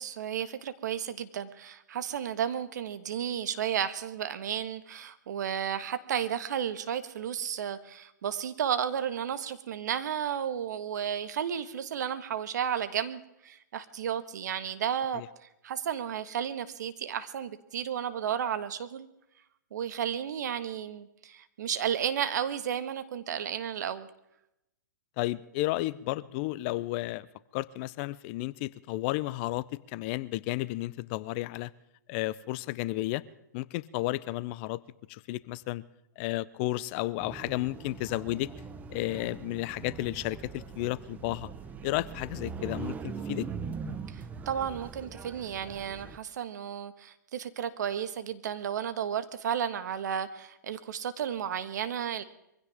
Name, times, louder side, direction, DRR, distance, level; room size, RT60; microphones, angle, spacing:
voice 1, 0.0-15.2 15.6-19.1 19.7-24.1 44.1-52.2, right 9 dB, 60° right, 11 dB, 1.6 m, -33 dB
voice 2, 25.2-27.3 27.5-31.7 32.1-33.2 33.5-34.8 35.1-35.8 36.2-38.5 38.9-41.5 41.8-43.5, left 18 dB, 35° left, 19 dB, 0.6 m, -32 dB
sound 1, 37.2-46.2, right 5 dB, 15° right, 0.9 m, -41 dB
23.5 x 16.5 x 3.6 m, 0.84 s
hypercardioid pair, 130°, 10 cm